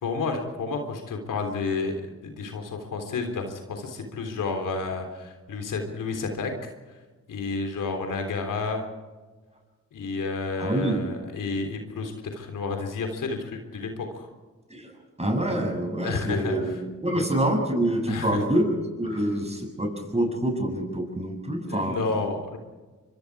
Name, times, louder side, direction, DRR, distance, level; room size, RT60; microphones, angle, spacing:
voice 1, 0.0-6.5 6.9-7.0 7.3-8.9 9.9-14.3 16.0-16.7 17.2-17.3 18.1-18.4 21.7-22.6, left 4 dB, 80° left, 4 dB, 3.5 m, -31 dB
voice 2, 10.6-11.0 14.7-14.9 15.2-16.8 17.0-18.7 19.0-22.0, right 1 dB, 20° right, 3 dB, 7.5 m, -26 dB
25.0 x 23.0 x 4.9 m, 1.3 s
supercardioid pair, 45°, 32 cm